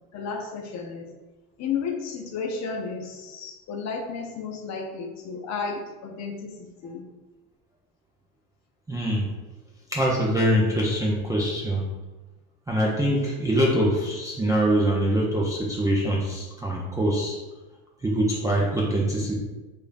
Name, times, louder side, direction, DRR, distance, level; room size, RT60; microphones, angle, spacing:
voice 1, 0.1-1.1 1.6-7.1, left 5 dB, 40° left, 3 dB, 0.7 m, -33 dB
voice 2, 8.9-9.3 9.9-11.8 12.7-17.4 18.0-19.4, right 1 dB, 10° right, -5 dB, 0.4 m, -24 dB
4.8 x 2.6 x 2.5 m, 1.2 s
hypercardioid pair, 95°, 44 cm